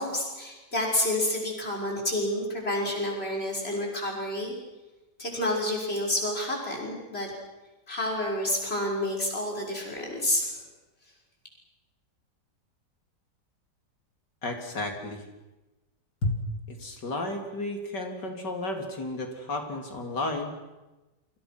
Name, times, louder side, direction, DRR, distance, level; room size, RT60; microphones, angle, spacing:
voice 1, 0.0-4.5 5.2-7.3 7.9-10.5, left 1 dB, 35° left, -1 dB, 6.6 m, -29 dB
voice 2, 14.4-15.2 16.2-16.3 16.7-20.5, left 2 dB, 90° left, 3 dB, 4.1 m, -32 dB
29.0 x 25.0 x 6.2 m, 1.1 s
omnidirectional pair, 1.8 m